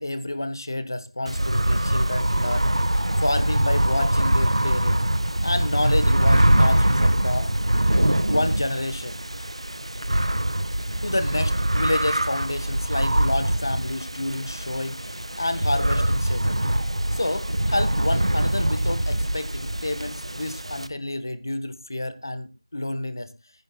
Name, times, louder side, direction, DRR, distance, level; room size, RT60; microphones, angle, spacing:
voice 1, 0.0-2.7 3.2-5.0 5.4-7.5 8.3-9.2 11.0-16.6 17.1-23.3, left 1 dB, 40° left, 11 dB, 1.3 m, -29 dB
sound 1, 1.3-20.9, right 1 dB, 75° right, 1.4 m, -23 dB
19.0 x 11.0 x 2.4 m, 0.28 s
figure-of-eight pair, 175°, 3 cm